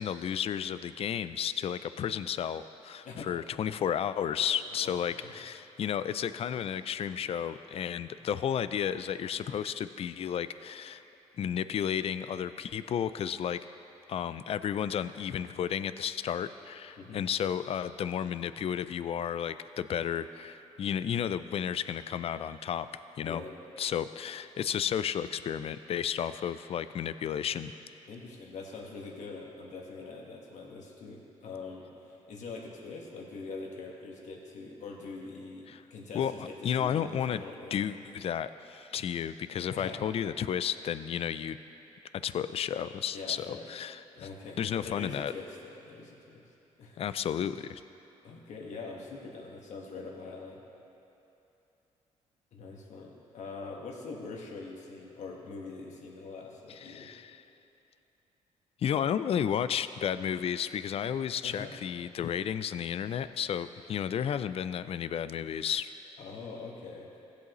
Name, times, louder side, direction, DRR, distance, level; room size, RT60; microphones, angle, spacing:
voice 1, 0.0-11.0 11.4-13.6 14.1-22.9 23.2-23.4 23.8-27.7 35.7-35.8 36.1-37.4 37.7-41.6 42.2-44.3 44.6-45.3 47.0-47.8 56.7-57.4 58.8-65.9, left 9 dB, 50° left, 13 dB, 0.4 m, -32 dB
voice 2, 23.2-23.5 28.1-37.9 39.7-40.0 43.1-43.7 44.1-46.5 46.8-47.2 48.2-50.6 52.5-57.2 61.4-61.7 66.2-67.1, left 4 dB, 70° left, -1 dB, 1.6 m, -43 dB
15.5 x 8.4 x 3.1 m, 2.8 s
cardioid pair, 85°, 13 cm